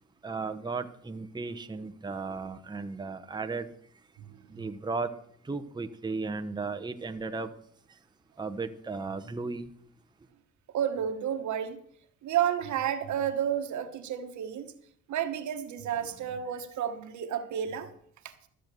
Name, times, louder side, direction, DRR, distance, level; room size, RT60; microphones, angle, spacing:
voice 1, 0.2-3.7 4.6-5.1 5.5-7.5 8.4-9.7, right 4 dB, 15° right, 0.9 m, -35 dB
voice 2, 4.2-4.7 10.7-11.8 12.2-14.7 15.1-17.9 18.2-18.3, right 9 dB, 70° right, 1.4 m, -31 dB
13.0 x 7.6 x 6.8 m
cardioid pair, 90°, 30 cm